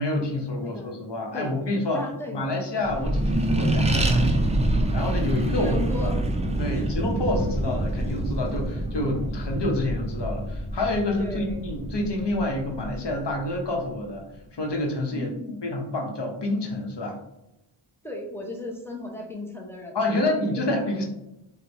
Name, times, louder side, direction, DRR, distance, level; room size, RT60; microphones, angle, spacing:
voice 1, 0.0-2.0 2.3-4.5 4.9-5.7 6.0-6.1 6.6-14.2 14.5-15.3 15.6-17.2 19.9-21.0, left 1 dB, 55° left, 1 dB, 0.9 m, -28 dB
voice 2, 0.6-1.0 1.3-1.5 1.9-2.4 5.5-6.2 6.7-6.9 11.2-11.6 15.1-15.7 18.0-20.7, left 2 dB, 5° left, 0 dB, 0.8 m, -35 dB
Accelerating revving vroom, 2.8-13.8, right 1 dB, 15° right, 0.3 m, -26 dB
4.4 x 2.2 x 2.6 m, 0.89 s
wide cardioid pair, 45°, 50 cm